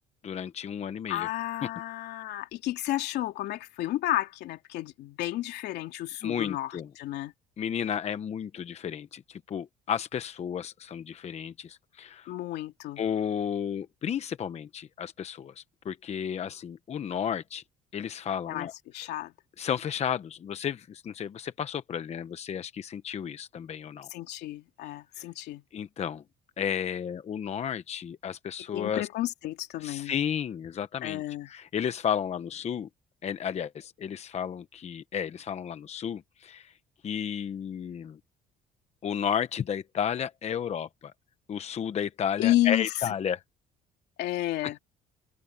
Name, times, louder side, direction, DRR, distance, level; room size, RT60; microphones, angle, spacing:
voice 1, 0.2-1.3 6.2-6.9 7.6-12.3 13.0-17.6 17.9-18.7 19.6-24.1 25.2-25.3 25.7-26.2 26.6-29.1 29.8-32.9 33.2-36.7 37.0-38.2 39.0-41.1 41.5-43.4 44.6-44.8, left 8 dB, 40° left, 0.9 m, -33 dB
voice 2, 1.1-7.3 12.3-13.0 18.5-19.3 24.1-25.6 28.7-30.2 31.0-31.5 42.4-42.9 44.2-44.8, left 15 dB, 80° left, 3.0 m, -31 dB
cardioid pair, 110°, 17 cm